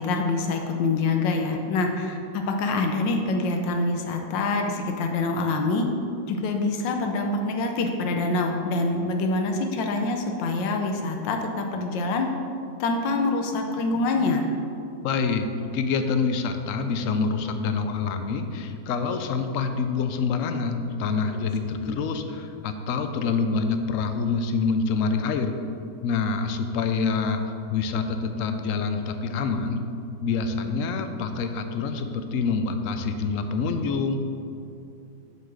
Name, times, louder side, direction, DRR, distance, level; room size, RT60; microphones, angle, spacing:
voice 1, 0.0-5.9 6.3-12.3 12.8-14.5 21.3-21.4 21.8-22.0, left 3 dB, 85° left, 3 dB, 1.5 m, -25 dB
voice 2, 15.0-25.5 26.0-27.4 27.7-29.8 30.2-34.2, left 4 dB, 65° left, 7 dB, 0.8 m, -26 dB
7.5 x 5.7 x 6.5 m, 2.6 s
omnidirectional pair, 2.0 m